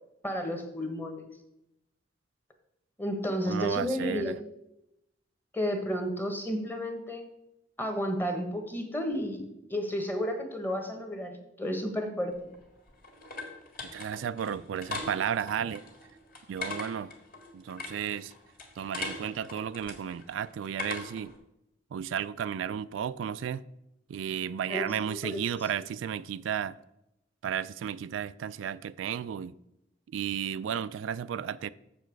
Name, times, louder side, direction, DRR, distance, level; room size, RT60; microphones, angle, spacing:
voice 1, 0.2-1.2 3.0-4.3 5.5-7.2 7.8-9.4 9.7-12.5 24.7-25.4, equal, 10° left, 1.1 m, -32 dB
voice 2, 3.5-4.4 13.9-15.8 16.5-17.1 17.5-18.3 18.8-21.3 21.9-23.6 24.1-26.8 27.4-29.5 30.1-31.7, right 8 dB, 85° right, 0.3 m, -33 dB
sound 1, 12.4-21.4, left 3 dB, 50° left, 1.9 m, -42 dB
7.3 x 6.9 x 4.6 m
head